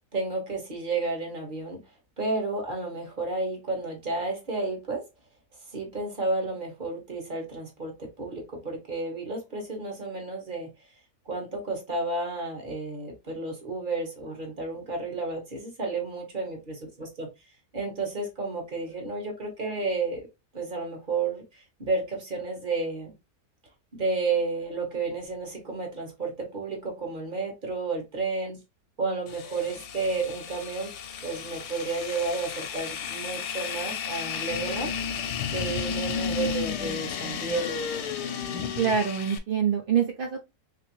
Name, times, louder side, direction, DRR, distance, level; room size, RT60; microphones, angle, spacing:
voice 1, 0.1-1.9 2.2-5.1 5.7-10.7 11.2-17.3 17.7-20.3 20.5-23.1 23.9-28.6 29.0-30.9 31.2-35.2 35.5-37.8, right 3 dB, 35° right, 1.2 m, -31 dB
sound 1, 29.3-39.4, left 7 dB, 80° left, 1.3 m, -33 dB
voice 2, 38.8-40.4, right 8 dB, 80° right, 0.4 m, -25 dB
3.3 x 3.0 x 3.0 m
omnidirectional pair, 1.7 m